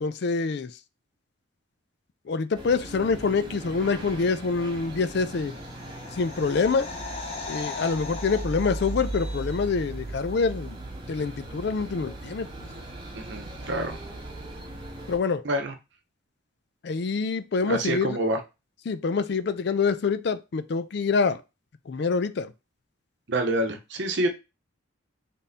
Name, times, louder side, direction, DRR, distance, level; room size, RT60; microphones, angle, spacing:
voice 1, 0.0-0.7 2.3-5.5 6.2-6.9 7.5-10.8 11.1-12.5 15.1-15.4 16.8-18.2 18.9-21.4 21.9-22.5, left 4 dB, 50° left, 0.4 m, -26 dB
sound 1, 2.5-15.2, right 2 dB, 20° right, 0.9 m, -38 dB
sound 2, 5.0-9.9 10.2-10.3, left 3 dB, 30° left, 0.7 m, -39 dB
voice 2, 13.1-14.0 15.4-15.7 17.7-18.4 23.3-24.3, right 1 dB, 55° right, 0.8 m, -27 dB
3.5 x 2.7 x 4.1 m
head